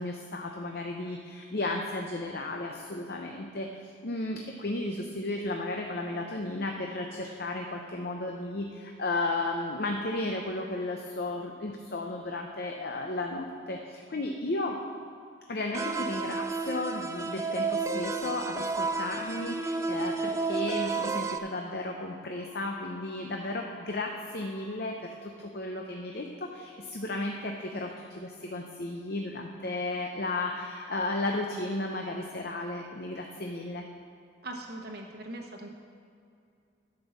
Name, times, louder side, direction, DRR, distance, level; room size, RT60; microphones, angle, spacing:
voice 1, 0.0-14.8 15.5-33.9, left 2 dB, 50° left, 2 dB, 0.7 m, -34 dB
sound 1, 15.7-21.4, right 4 dB, 15° right, 0.3 m, -31 dB
sound 2, 18.2-25.4, left 2 dB, 90° left, 2.1 m, -55 dB
voice 2, 34.4-35.7, right 1 dB, 50° right, 2 dB, 1.0 m, -40 dB
11.5 x 5.4 x 7.1 m, 2.5 s
head